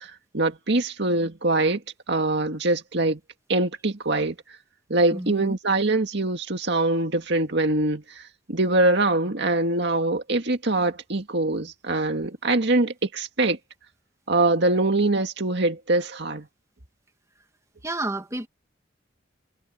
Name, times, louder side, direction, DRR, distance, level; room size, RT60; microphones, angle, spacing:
voice 1, 0.0-1.8 2.1-3.2 3.5-4.3 4.9-8.2 8.5-13.6 14.3-16.5, right 2 dB, 60° right, 2.0 m, -23 dB
voice 2, 5.1-5.6 17.8-18.5, right 1 dB, 15° right, 2.4 m, -30 dB
head